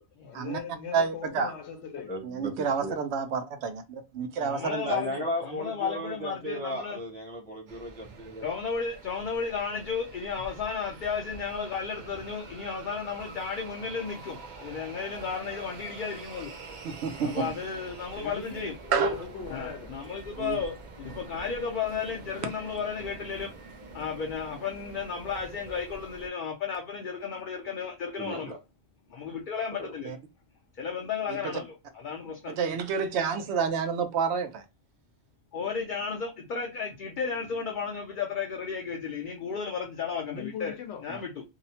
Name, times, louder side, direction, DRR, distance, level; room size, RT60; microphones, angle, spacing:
voice 1, 0.0-2.2 18.1-19.9 40.2-41.1, left 7 dB, 85° left, 0.9 m, -40 dB
voice 2, 0.9-1.5 2.2-5.0 16.8-17.3 18.9-19.2 20.4-20.6 30.0-30.2 31.3-31.5 32.5-34.6 41.1-41.2, right 6 dB, 85° right, 0.8 m, -29 dB
voice 3, 2.1-3.0 4.9-8.5 28.2-28.6 29.8-29.9, equal, 10° left, 0.6 m, -35 dB
voice 4, 4.4-7.0 8.4-16.5 17.2-18.7 19.0-19.1 19.5-28.6 29.1-30.1 30.8-32.6 35.5-40.8 41.0-41.4, left 6 dB, 60° left, 0.6 m, -34 dB
sound 1, 7.7-26.3, right 3 dB, 55° right, 0.6 m, -46 dB
2.8 x 2.0 x 2.7 m
omnidirectional pair, 1.1 m